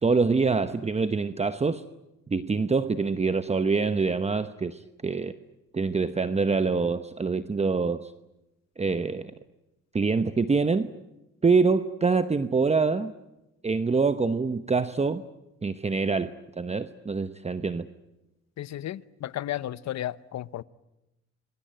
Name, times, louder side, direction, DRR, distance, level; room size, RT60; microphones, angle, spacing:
voice 1, 0.0-1.8 2.3-5.3 5.7-8.1 8.8-9.3 9.9-10.9 11.4-13.1 13.6-15.2 15.6-16.3 16.6-17.9, right 4 dB, 20° right, 0.9 m, -25 dB
voice 2, 18.6-20.6, left 12 dB, 65° left, 0.9 m, -33 dB
25.5 x 24.0 x 9.0 m
cardioid pair, 90°, 30 cm